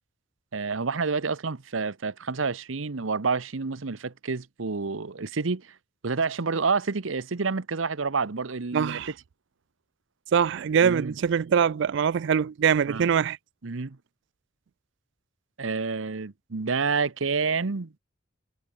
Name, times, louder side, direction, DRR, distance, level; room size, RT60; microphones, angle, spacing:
voice 1, 0.5-5.7 6.0-9.0 10.8-11.2 12.9-13.1 13.6-14.0 15.6-17.9, right 4 dB, 90° right, 0.9 m, -28 dB
voice 2, 8.7-9.1 10.3-13.4, right 7 dB, 65° right, 0.4 m, -23 dB
head